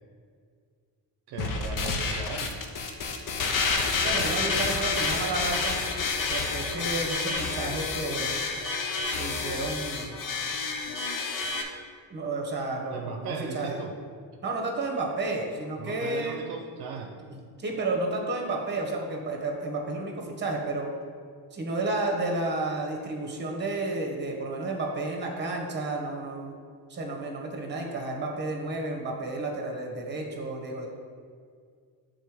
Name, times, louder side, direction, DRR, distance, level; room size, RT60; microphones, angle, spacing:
voice 1, 1.3-2.6 12.9-13.9 15.8-17.1, right 5 dB, 70° right, 3 dB, 0.7 m, -37 dB
sound 1, 1.4-11.6, left 4 dB, 50° left, 0.7 m, -29 dB
voice 2, 3.9-5.8 6.3-8.4 9.2-10.2 12.1-13.8 14.4-16.5 17.6-20.9 21.5-26.6 26.9-30.9, right 2 dB, 25° right, 0 dB, 1.2 m, -31 dB
6.6 x 3.8 x 4.9 m, 2.1 s
cardioid pair, 130°, 40 cm